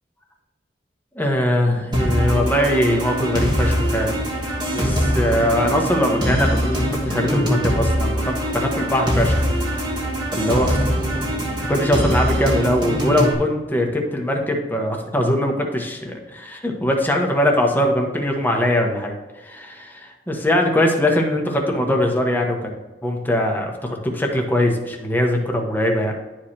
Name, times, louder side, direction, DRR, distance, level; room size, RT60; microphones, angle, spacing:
voice 1, 1.2-4.1 4.7-10.9 11.7-19.1 19.4-26.1, left 1 dB, 10° left, 1 dB, 1.2 m, -21 dB
sound 1, 1.9-13.3, equal, 25° right, 1.9 m, -22 dB
11.0 x 4.8 x 2.9 m, 1.2 s
head